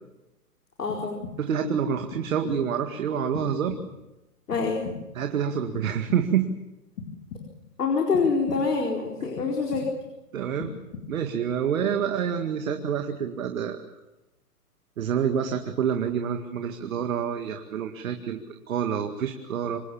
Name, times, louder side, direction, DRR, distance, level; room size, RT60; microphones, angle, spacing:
voice 1, 0.8-1.2 4.5-4.8 7.8-9.8, left 4 dB, 75° left, 1 dB, 4.5 m, -25 dB
sound 1, 0.9-1.7 2.1-2.8 3.3-4.1 4.5-5.3 5.7-6.5 7.0-7.8 8.1-8.9 9.4-10.2 10.6-11.4, left 5 dB, 50° left, 4.2 m, -41 dB
voice 2, 1.4-3.7 5.2-6.5 10.3-10.7 11.1-13.8 15.0-19.8, right 8 dB, 60° right, 6 dB, 2.1 m, -27 dB
26.0 x 19.5 x 7.3 m, 0.98 s
hypercardioid pair, 140°, 47 cm